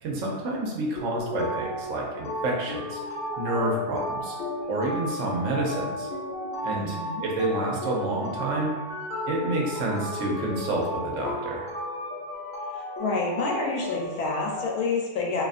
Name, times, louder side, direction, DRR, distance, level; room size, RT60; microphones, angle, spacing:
voice 1, 0.0-3.0 3.4-4.4 4.7-6.1 6.6-8.7 9.3-11.7, right 2 dB, 65° right, -2 dB, 0.9 m, -29 dB
sound 1, 1.0-14.7, left 1 dB, 65° left, 0.9 m, -34 dB
voice 2, 6.7-7.2 13.0-15.4, left 3 dB, 85° left, -1 dB, 1.1 m, -28 dB
2.6 x 2.4 x 2.4 m, 1.2 s
omnidirectional pair, 1.6 m